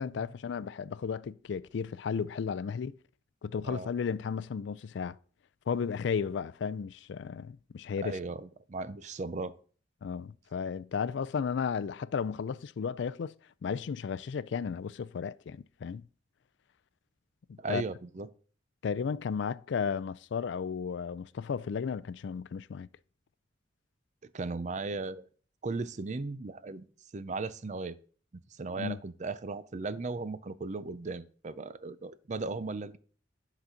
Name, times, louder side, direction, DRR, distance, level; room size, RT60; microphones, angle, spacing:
voice 1, 0.0-3.0 3.4-5.2 5.7-8.2 10.0-13.3 13.6-16.1 17.5-17.8 18.8-22.9 28.7-29.0, left 6 dB, 65° left, 0.4 m, -34 dB
voice 2, 8.0-9.5 17.6-18.3 24.3-25.3 25.6-26.9 27.1-28.0 28.5-33.0, right 3 dB, 40° right, 0.5 m, -36 dB
10.5 x 4.1 x 5.7 m
head